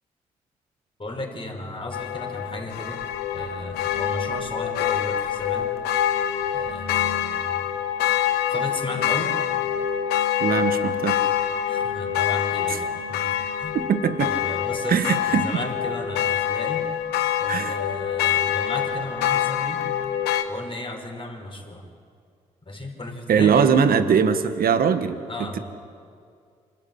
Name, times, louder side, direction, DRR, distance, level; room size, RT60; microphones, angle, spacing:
voice 1, 1.0-3.0 3.3-5.7 6.5-7.6 8.5-9.3 11.7-13.7 14.2-16.8 17.4-19.9 20.5-21.8 22.6-23.7 25.3-25.6, left 2 dB, 30° left, 2 dB, 5.0 m, -34 dB
sound 1, 1.9-20.4, left 10 dB, 80° left, 1.0 m, -25 dB
voice 2, 10.4-11.2 12.7-12.8 13.9-14.3 14.9-15.6 17.5-17.8 23.3-25.2, right 7 dB, 65° right, 10 dB, 1.4 m, -21 dB
25.0 x 13.5 x 8.8 m, 2.3 s
hypercardioid pair, 45°, 17 cm